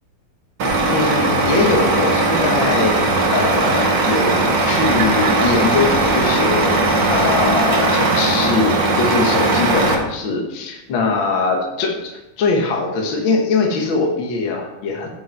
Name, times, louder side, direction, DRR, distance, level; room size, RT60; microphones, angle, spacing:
Truck, 0.6-10.0, right 2 dB, 65° right, 1.1 m, -18 dB
voice 1, 0.9-15.1, left 4 dB, 60° left, 0 dB, 1.3 m, -21 dB
11.0 x 5.5 x 5.9 m, 1.0 s
omnidirectional pair, 4.1 m